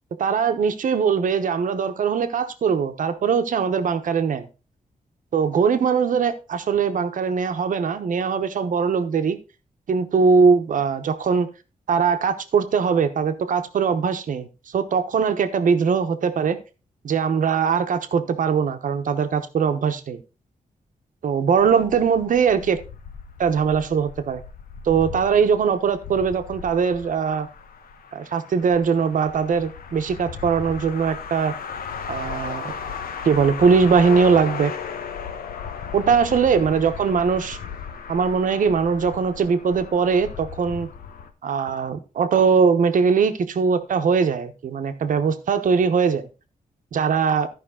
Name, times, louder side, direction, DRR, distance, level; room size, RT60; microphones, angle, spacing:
voice 1, 0.2-4.5 5.3-9.4 9.9-11.5 11.9-16.6 17.0-20.2 21.2-22.8 23.4-24.4 24.8-27.5 28.1-31.5 32.1-32.7 33.2-34.7 35.9-37.6 38.1-40.9 41.4-46.3 46.9-47.5, right 6 dB, 65° right, 1.0 m, -21 dB
sound 1, 21.6-41.3, left 6 dB, 85° left, 1.1 m, -36 dB
13.5 x 5.3 x 3.7 m
wide cardioid pair, 165°, 15 cm